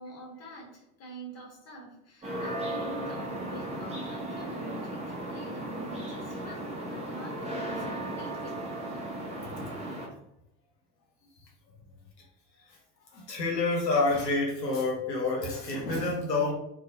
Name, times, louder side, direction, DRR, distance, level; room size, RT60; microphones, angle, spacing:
voice 1, 0.0-8.6, right 1 dB, 30° left, -1 dB, 1.0 m, -45 dB
sound 1, 2.2-10.1, right 1 dB, 15° right, 0.8 m, -36 dB
voice 2, 13.1-16.5, left 3 dB, 90° left, -2 dB, 0.5 m, -28 dB
2.6 x 2.1 x 2.5 m, 0.81 s
figure-of-eight pair, 60°, 48 cm